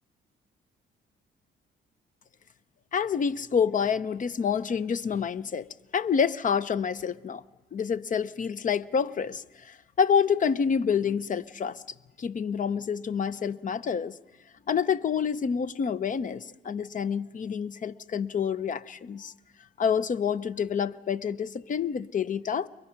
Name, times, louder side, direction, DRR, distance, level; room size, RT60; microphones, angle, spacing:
voice 1, 2.9-5.7 5.9-7.4 7.7-11.8 12.2-14.2 14.7-19.3 19.8-22.7, left 7 dB, 40° left, 0.6 m, -28 dB
29.0 x 23.0 x 5.7 m
cardioid pair, 90°, 20 cm